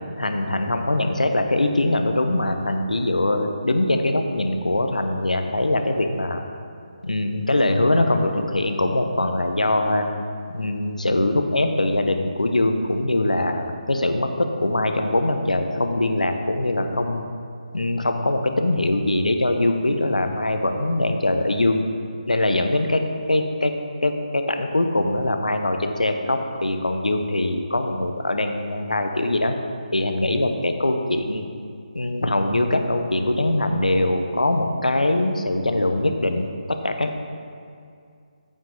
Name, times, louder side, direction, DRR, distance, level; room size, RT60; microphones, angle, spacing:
voice 1, 0.2-6.4 7.0-10.1 10.5-17.2 17.7-21.8 22.3-23.0 23.3-23.7 24.0-29.5 29.9-31.5 31.9-37.2, left 1 dB, 80° left, 5 dB, 0.8 m, -22 dB
9.0 x 8.5 x 3.3 m, 2.3 s
figure-of-eight pair, 150°, 4 cm